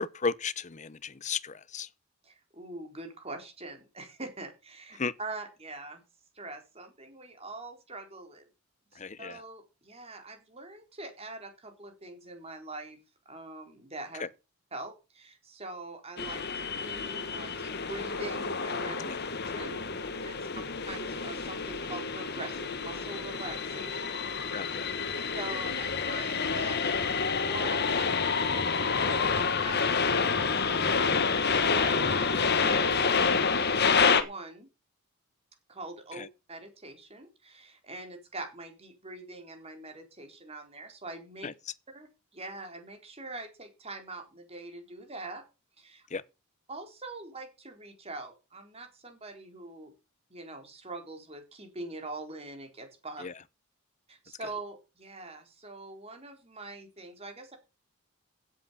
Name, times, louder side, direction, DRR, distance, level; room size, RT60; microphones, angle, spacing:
voice 1, 0.0-1.9 5.0-5.1 8.9-9.4 14.2-14.3 19.0-19.2 20.4-20.6 24.5-24.9 36.1-36.3 41.4-41.5 46.1-46.2 53.2-53.3, left 5 dB, 35° left, 0.7 m, -35 dB
voice 2, 2.2-6.0 6.3-8.5 8.9-13.0 13.3-14.2 14.7-19.1 19.5-19.8 20.2-24.1 25.3-31.1 31.7-34.7 35.7-36.2 36.5-41.5 41.9-45.4 45.8-46.1 46.7-49.9 50.3-53.3 54.1-57.6, right 2 dB, 25° right, 3.9 m, -43 dB
sound 1, 16.2-34.2, left 5 dB, 50° left, 1.5 m, -28 dB
16.0 x 8.4 x 5.6 m
head